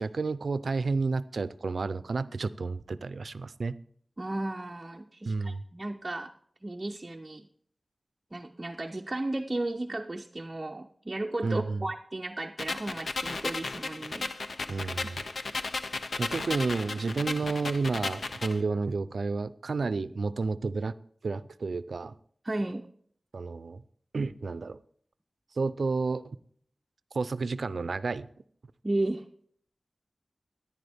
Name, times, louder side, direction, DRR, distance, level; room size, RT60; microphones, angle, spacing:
voice 1, 0.0-3.8 5.3-5.6 11.4-11.8 14.7-15.2 16.2-21.0 21.2-22.2 23.3-23.8 24.1-24.8 25.6-26.2 27.1-28.3, right 4 dB, 80° right, 15 dB, 0.4 m, -31 dB
voice 2, 4.2-6.3 6.6-7.5 8.3-14.3 14.7-15.1 22.4-22.9 28.8-29.3, right 2 dB, 30° right, 2 dB, 0.6 m, -34 dB
sound 1, 12.6-18.6, left 3 dB, 80° left, 0.6 m, -35 dB
13.5 x 10.5 x 3.4 m, 0.62 s
wide cardioid pair, 90°, 0 cm